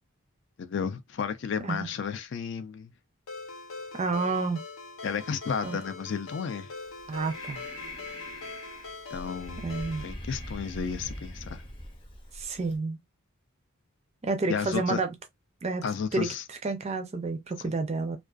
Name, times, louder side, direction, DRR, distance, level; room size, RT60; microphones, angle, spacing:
voice 1, 0.6-2.9 5.0-6.7 9.1-9.6 10.0-11.6 14.5-15.0 15.8-16.4 17.6-17.7, left 6 dB, 55° left, 0.3 m, -32 dB
Ringtone, 3.3-10.1, left 3 dB, 75° left, 0.8 m, -43 dB
voice 2, 3.9-4.6 5.6-5.8 7.1-7.6 9.6-10.1 12.3-13.0 14.2-15.1 15.6-15.8 16.1-16.3 16.6-18.2, right 3 dB, 30° right, 0.4 m, -30 dB
Breathing, 6.8-12.8, left 1 dB, 25° left, 0.6 m, -42 dB
2.4 x 2.3 x 2.3 m
head